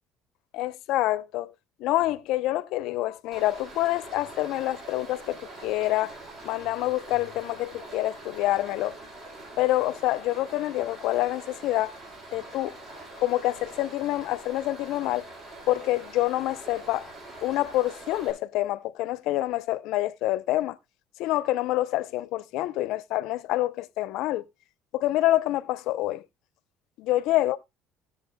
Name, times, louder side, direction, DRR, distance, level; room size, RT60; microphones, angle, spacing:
voice 1, 0.5-1.5 1.8-6.2 6.4-8.9 9.6-11.9 12.3-12.8 13.2-15.3 15.7-17.1 17.4-20.8 21.2-24.5 24.9-26.2 27.0-27.6, left 16 dB, 75° left, 0.6 m, -27 dB
Stream, 3.3-18.3, right 2 dB, 45° right, 6.2 m, -44 dB
18.5 x 6.8 x 2.2 m
cardioid pair, 110°, 0 cm